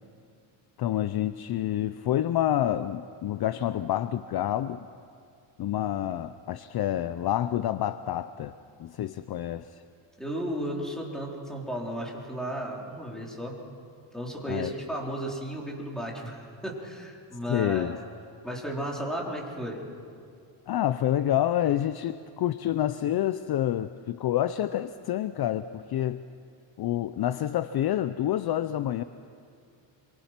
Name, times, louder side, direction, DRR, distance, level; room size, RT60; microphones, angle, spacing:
voice 1, 0.8-4.9 5.6-8.5 8.8-9.8 14.5-14.7 17.5-18.0 20.7-26.2 26.8-29.0, left 12 dB, 50° left, 12 dB, 0.6 m, -28 dB
voice 2, 10.2-13.6 14.1-18.0 18.4-19.8, right 1 dB, ahead, -2 dB, 4.0 m, -34 dB
26.0 x 24.0 x 5.9 m, 2.4 s
cardioid pair, 140°, 49 cm